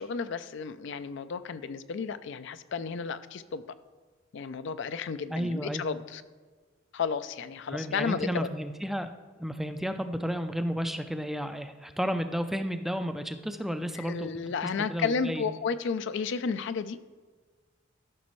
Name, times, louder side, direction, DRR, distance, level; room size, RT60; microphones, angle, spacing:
voice 1, 0.0-3.6 4.3-6.2 6.9-8.5 13.9-17.0, left 5 dB, 65° left, 12 dB, 0.4 m, -32 dB
voice 2, 5.3-5.8 7.7-9.1 9.4-14.3 14.8-15.4, equal, ahead, 8 dB, 0.4 m, -32 dB
13.5 x 6.0 x 3.1 m, 1.5 s
head